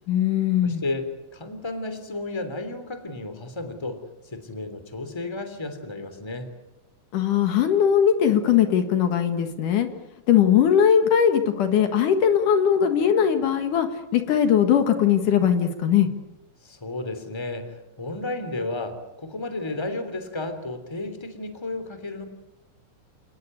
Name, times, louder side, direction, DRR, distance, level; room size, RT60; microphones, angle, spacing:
voice 1, 0.1-0.8 7.1-9.9 10.3-13.9 14.1-16.1, left 8 dB, 70° left, 7 dB, 3.1 m, -20 dB
voice 2, 0.6-4.0 4.3-6.5 16.6-22.3, left 2 dB, 10° left, 9 dB, 2.9 m, -33 dB
29.0 x 19.0 x 9.6 m, 0.98 s
omnidirectional pair, 3.8 m